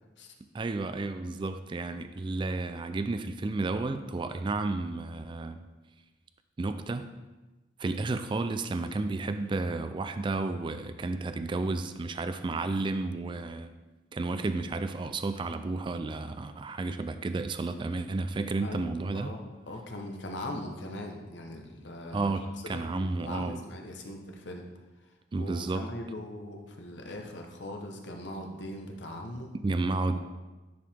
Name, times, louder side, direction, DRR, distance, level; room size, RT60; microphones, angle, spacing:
voice 1, 0.5-5.6 6.6-7.1 7.8-13.7 14.1-19.3 22.1-23.6 25.3-25.9 29.6-30.2, right 3 dB, 25° right, 9 dB, 0.3 m, -32 dB
voice 2, 18.6-22.3 22.7-24.6 25.3-29.5 30.1-30.2, left 1 dB, 75° left, 3 dB, 1.0 m, -40 dB
10.0 x 4.8 x 3.6 m, 1.2 s
head